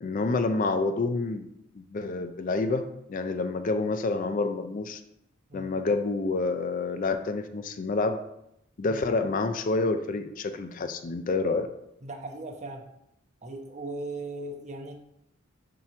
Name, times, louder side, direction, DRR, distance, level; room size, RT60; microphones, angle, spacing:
voice 1, 0.0-1.5 1.7-5.0 5.5-8.2 8.8-11.7, left 3 dB, 40° left, 9 dB, 0.4 m, -28 dB
voice 2, 12.0-12.8 13.4-14.9, right 2 dB, 35° right, 1 dB, 0.9 m, -38 dB
7.3 x 3.0 x 5.9 m, 0.81 s
head